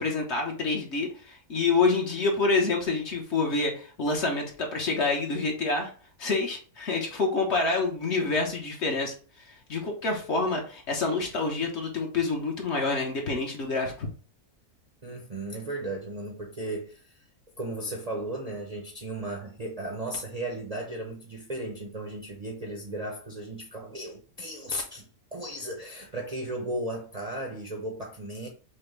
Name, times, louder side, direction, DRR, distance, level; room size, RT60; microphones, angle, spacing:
voice 1, 0.0-5.9 6.2-9.1 9.7-14.1, left 3 dB, 50° left, 1.1 m, -27 dB
voice 2, 15.0-17.1 17.6-28.5, right 1 dB, 40° right, 0.6 m, -35 dB
5.9 x 2.2 x 3.2 m
omnidirectional pair, 1.6 m